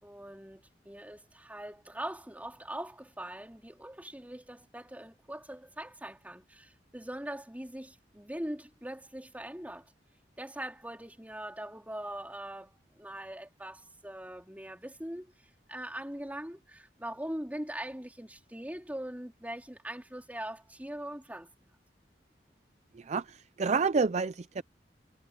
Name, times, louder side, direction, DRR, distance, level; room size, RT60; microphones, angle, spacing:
voice 1, 0.0-9.9 10.4-15.3 15.7-21.7, right 1 dB, 10° right, 3.7 m, -42 dB
voice 2, 22.9-24.6, right 4 dB, 40° right, 0.5 m, -29 dB
head